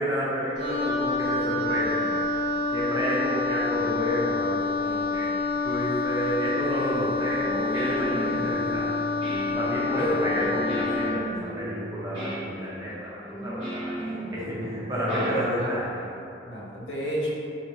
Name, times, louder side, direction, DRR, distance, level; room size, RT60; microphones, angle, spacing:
voice 1, 0.0-2.2 2.7-5.3 5.6-8.9 9.6-16.0, equal, 20° right, -8 dB, 0.7 m, -30 dB
Wind instrument woodwind instrument, 0.6-11.2, left 3 dB, 65° right, 0.7 m, -28 dB
Guitar, 7.4-16.0, right 1 dB, 25° left, 1.4 m, -35 dB
voice 2, 9.5-10.2 15.1-15.7 16.4-17.3, right 1 dB, 80° left, -5 dB, 0.7 m, -31 dB
2.9 x 2.6 x 2.9 m, 2.7 s
head